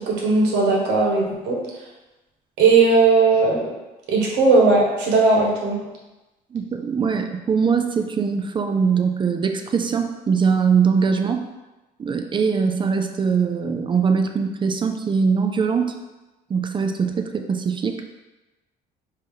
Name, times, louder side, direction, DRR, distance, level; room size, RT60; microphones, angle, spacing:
voice 1, 0.0-1.6 2.6-3.6 4.1-5.8, right 3 dB, 85° right, -2 dB, 1.2 m, -17 dB
voice 2, 6.5-11.4 12.0-15.9 16.5-18.0, right 6 dB, 30° right, 6 dB, 0.4 m, -22 dB
4.9 x 2.8 x 3.7 m, 1.1 s
cardioid pair, 110°, 17 cm